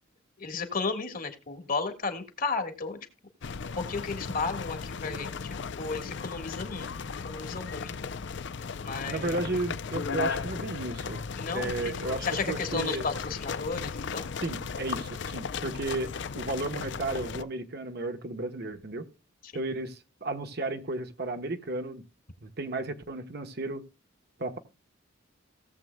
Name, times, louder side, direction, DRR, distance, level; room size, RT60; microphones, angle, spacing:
voice 1, 0.4-3.0 3.8-7.9 8.8-9.6 11.3-11.9 12.2-14.2 19.4-19.6, left 4 dB, 45° left, 1.6 m, -34 dB
sound 1, 3.4-17.4, left 5 dB, 60° left, 0.5 m, -36 dB
voice 2, 9.1-11.2 11.5-13.1 14.4-19.1 19.5-22.0 22.4-23.9 24.4-24.6, right 2 dB, 55° right, 1.1 m, -34 dB
17.5 x 7.6 x 2.2 m
head